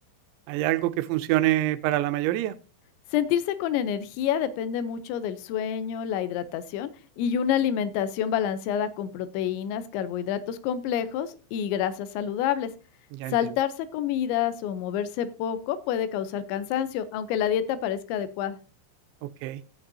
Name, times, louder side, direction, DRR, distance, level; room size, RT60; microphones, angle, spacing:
voice 1, 0.5-2.6 13.1-13.4 19.2-19.6, right 15 dB, 90° right, 3.0 m, -26 dB
voice 2, 3.1-6.9 7.2-12.7 13.3-18.6, left 9 dB, 85° left, 3.1 m, -28 dB
15.5 x 8.8 x 2.7 m
omnidirectional pair, 5.1 m